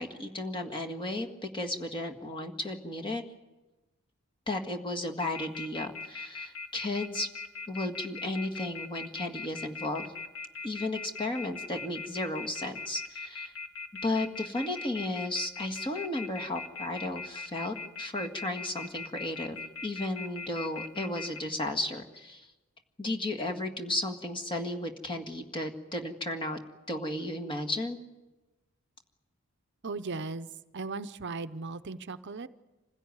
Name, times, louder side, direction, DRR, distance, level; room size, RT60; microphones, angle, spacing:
voice 1, 0.0-3.2 4.5-7.3 7.7-10.1 10.6-13.5 14.0-22.5 23.0-26.6 26.9-28.0, left 2 dB, 25° left, 4 dB, 1.9 m, -34 dB
sound 1, 5.2-21.4, left 3 dB, 75° left, 2.0 m, -40 dB
voice 2, 29.8-30.5 30.7-32.5, right 3 dB, 55° right, 11 dB, 0.7 m, -37 dB
26.0 x 16.0 x 9.7 m, 1.1 s
head